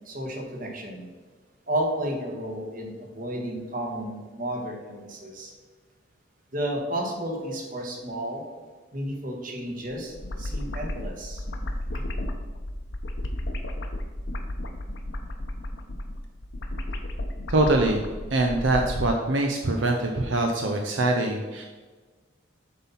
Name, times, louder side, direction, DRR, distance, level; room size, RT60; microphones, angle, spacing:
voice 1, 0.0-1.1 1.7-5.5 6.5-8.4 8.9-11.4 11.9-12.0, right 1 dB, 45° right, 1 dB, 1.5 m, -32 dB
sound 1, 9.9-19.1, left 1 dB, 65° left, 0.8 m, -33 dB
voice 2, 17.5-18.0 18.3-21.6, right 2 dB, 75° right, 2 dB, 0.7 m, -23 dB
7.7 x 5.8 x 4.1 m, 1.4 s
head